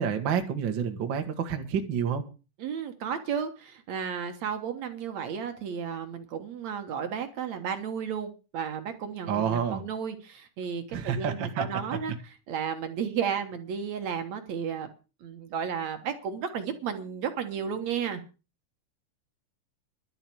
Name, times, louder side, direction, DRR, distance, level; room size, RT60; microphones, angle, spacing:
voice 1, 0.0-2.2 9.3-9.8 10.9-11.6, right 7 dB, 45° right, 5 dB, 1.8 m, -28 dB
voice 2, 2.6-14.9 15.2-18.2, right 7 dB, 60° right, 7 dB, 2.4 m, -33 dB
11.5 x 7.9 x 7.8 m, 0.33 s
omnidirectional pair, 3.8 m